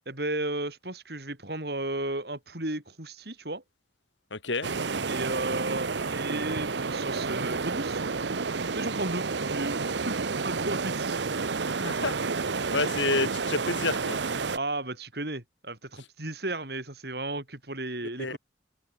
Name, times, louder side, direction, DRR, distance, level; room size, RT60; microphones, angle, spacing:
voice 1, 0.1-3.6 5.1-8.0 8.7-10.2 10.4-11.2 14.5-18.4, right 2 dB, 60° right, 4.3 m, -34 dB
voice 2, 4.3-4.7 11.7-14.2 18.2-18.4, left 3 dB, 90° left, 3.3 m, -30 dB
Mar entrando y saliendo de piedra, 4.6-14.6, right 4 dB, 75° right, 0.9 m, -30 dB
head